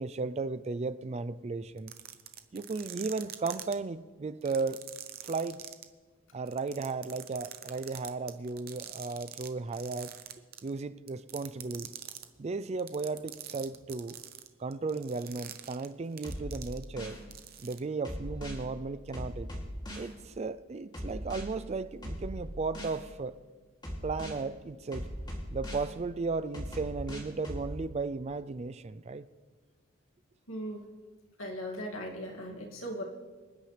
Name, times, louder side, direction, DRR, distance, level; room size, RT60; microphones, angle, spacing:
voice 1, 0.0-1.9 2.5-4.8 5.2-5.6 6.3-10.1 10.6-11.9 12.4-14.2 14.6-17.2 17.6-19.5 20.0-23.4 24.0-25.1 25.5-29.3, right 4 dB, 30° right, 13 dB, 0.4 m, -35 dB
sound 1, 1.8-3.7 4.4-5.8 6.5-9.5 9.7-10.7 11.1-12.2 12.8-17.0 17.3-17.8, right 11 dB, 50° right, 0.8 m, -44 dB
sound 2, 16.2-17.2 18.0-18.6 19.1-20.1 20.9-21.4 22.0-23.0 23.8-24.4 24.9-25.9 26.5-27.7, equal, 20° left, 2.7 m, -39 dB
voice 2, 30.5-30.9 31.4-33.0, equal, 85° left, -1 dB, 2.3 m, -38 dB
26.0 x 9.5 x 3.3 m, 1.5 s
head